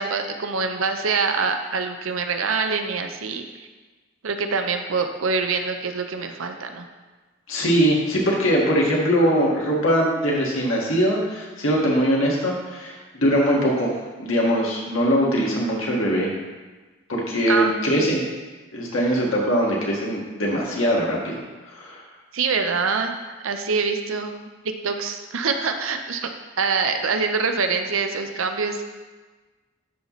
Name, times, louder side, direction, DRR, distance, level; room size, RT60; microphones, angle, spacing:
voice 1, 0.0-3.5 4.2-6.9 17.5-18.1 22.3-23.1 23.4-24.4 24.6-26.3 26.6-28.8, right 4 dB, 90° right, 6 dB, 0.6 m, -25 dB
voice 2, 7.5-13.9 14.2-16.3 17.1-18.2 18.7-21.4 21.7-22.0, equal, 90° left, -3 dB, 1.7 m, -21 dB
12.0 x 4.1 x 3.1 m, 1.3 s
head